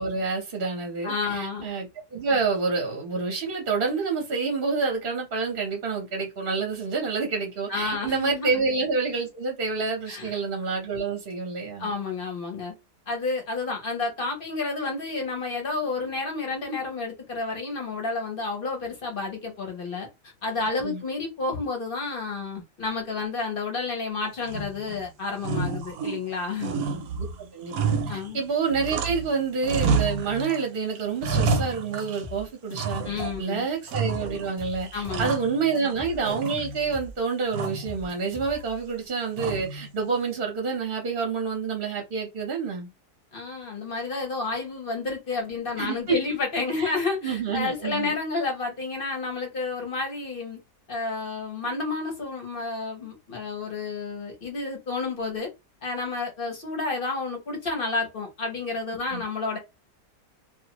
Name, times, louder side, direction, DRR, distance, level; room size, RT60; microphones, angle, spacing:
voice 1, 0.0-11.9 20.8-21.0 27.2-27.3 27.5-33.0 33.4-42.9 45.8-46.2 46.8-46.9 47.2-48.2 59.1-59.2, right 4 dB, 45° right, 0.7 m, -28 dB
voice 2, 1.0-1.7 7.7-8.5 10.1-10.3 11.8-12.7 13.1-20.1 20.4-26.8 28.1-28.4 33.0-33.7 34.9-35.3 43.3-50.6 50.9-55.5 55.8-59.6, left 3 dB, 45° left, 0.8 m, -30 dB
sound 1, 24.4-25.0 25.4-26.3 26.6-29.3 29.6-30.6 30.9-32.3 32.8-33.4 33.9-34.5 34.9-35.9 36.2-37.0 37.5-37.9 39.4-39.9, right 4 dB, 70° right, 0.9 m, -29 dB
sound 2, 31.3-31.5 32.0-33.4 33.9-35.3 35.7-37.2 37.6-38.8, left 2 dB, 15° left, 0.8 m, -42 dB
2.5 x 2.3 x 2.9 m
omnidirectional pair, 1.7 m